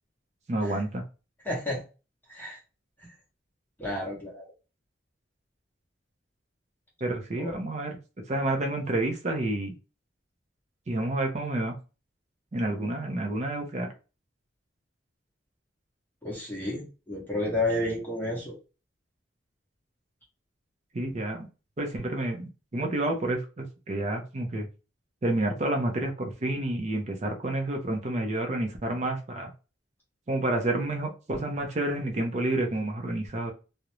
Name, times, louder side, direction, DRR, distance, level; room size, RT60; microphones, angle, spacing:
voice 1, 0.5-1.0 7.0-8.0 8.3-9.7 10.9-11.7 12.5-13.9 20.9-21.5 21.8-24.7 25.2-29.5 30.3-33.5, right 2 dB, 35° right, 3 dB, 0.5 m, -29 dB
voice 2, 1.4-1.8 2.3-2.6 3.8-4.4 7.4-7.6 16.2-18.5, left 1 dB, 10° left, -4 dB, 0.7 m, -31 dB
2.4 x 2.0 x 2.9 m, 0.32 s
head